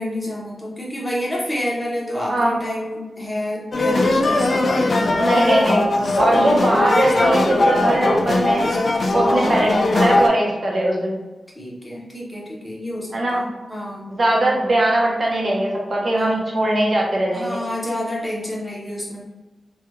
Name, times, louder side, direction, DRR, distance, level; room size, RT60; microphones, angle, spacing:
voice 1, 0.0-4.7 6.2-6.6 9.1-9.6 11.6-14.1 16.2-16.3 17.3-19.2, left 1 dB, 15° left, -4 dB, 0.9 m, -29 dB
sound 1, 3.7-10.3, left 2 dB, 55° left, 0.4 m, -19 dB
voice 2, 5.2-8.7 9.1-11.2 13.1-13.4 14.1-17.6, right 1 dB, 45° right, -2 dB, 0.9 m, -20 dB
3.2 x 2.3 x 3.0 m, 1.2 s
wide cardioid pair, 85°, 0 cm